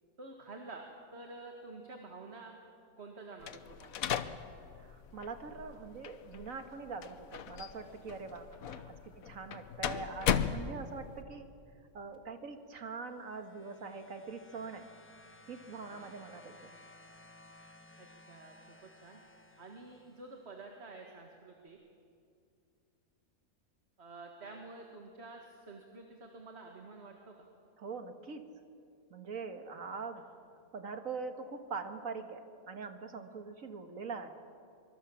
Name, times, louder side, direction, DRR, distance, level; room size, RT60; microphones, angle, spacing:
voice 1, 0.2-0.9 1.1-2.6 3.0-4.0 8.6-8.8 15.8-16.1 18.0-18.5 18.8-19.2 19.6-21.8 24.0-27.5, right 3 dB, 45° right, 2 dB, 2.1 m, -49 dB
sound 1, 3.4-11.2, left 8 dB, 75° left, 1.3 m, -37 dB
voice 2, 4.8-8.5 8.9-11.5 11.9-14.9 15.5-16.7 27.8-28.5 29.1-30.2 30.7-34.3, right 4 dB, 65° right, 7 dB, 1.9 m, -43 dB
sound 2, 12.9-20.6 21.7-21.8, left 1 dB, 10° left, 1.0 m, -58 dB
25.0 x 24.5 x 7.2 m, 2.3 s
omnidirectional pair, 1.5 m